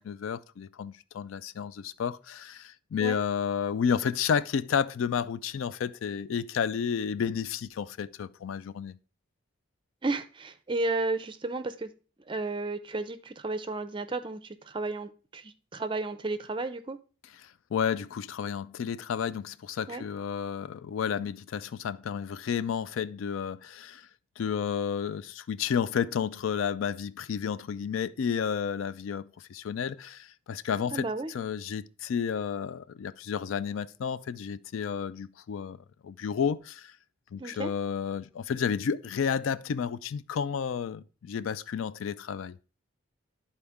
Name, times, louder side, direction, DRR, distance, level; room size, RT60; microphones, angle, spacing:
voice 1, 0.0-8.9 17.4-24.1 24.4-36.9 37.3-42.6, left 7 dB, 75° left, 0.3 m, -31 dB
voice 2, 10.0-11.9 12.3-17.0 19.9-20.0 30.9-31.3 37.4-37.7, right 2 dB, 25° right, 0.4 m, -33 dB
11.5 x 4.3 x 3.5 m
head